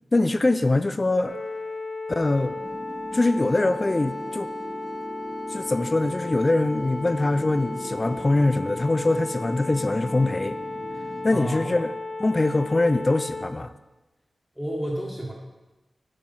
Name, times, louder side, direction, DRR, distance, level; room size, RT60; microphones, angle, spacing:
voice 1, 0.1-1.4 2.1-2.6 3.1-4.5 5.5-10.6 11.2-11.9 12.2-13.7, left 2 dB, 35° left, 12 dB, 0.4 m, -23 dB
sound 1, 1.2-13.4, left 2 dB, 70° left, 1.5 m, -35 dB
sound 2, 2.5-11.7, right 1 dB, 50° right, 1.7 m, -40 dB
voice 2, 11.3-11.7 14.5-15.3, right 1 dB, 5° left, -6 dB, 1.6 m, -31 dB
9.0 x 4.8 x 5.6 m, 1.1 s
wide cardioid pair, 80°, 0 cm